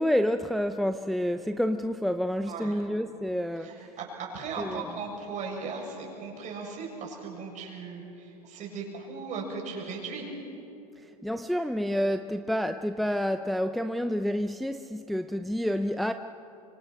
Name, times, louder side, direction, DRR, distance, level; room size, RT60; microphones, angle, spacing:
voice 1, 0.0-3.9 4.6-4.9 11.0-16.1, equal, ahead, 0.6 m, -29 dB
voice 2, 3.6-10.3, right 4 dB, 40° right, 7.1 m, -37 dB
25.0 x 24.0 x 6.2 m
hypercardioid pair, 95°, 19 cm